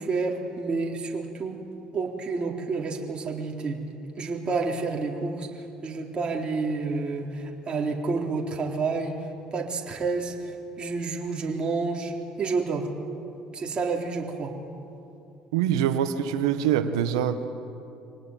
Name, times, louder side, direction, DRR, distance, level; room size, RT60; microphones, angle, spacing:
voice 1, 0.0-1.6 1.9-3.8 4.2-9.2 9.5-10.4 10.8-12.9 13.5-14.5, right 4 dB, 40° right, 0 dB, 3.8 m, -29 dB
voice 2, 15.5-17.4, right 9 dB, 85° right, 10 dB, 1.4 m, -24 dB
25.5 x 19.0 x 9.3 m, 2.6 s
hypercardioid pair, 70°, 3 cm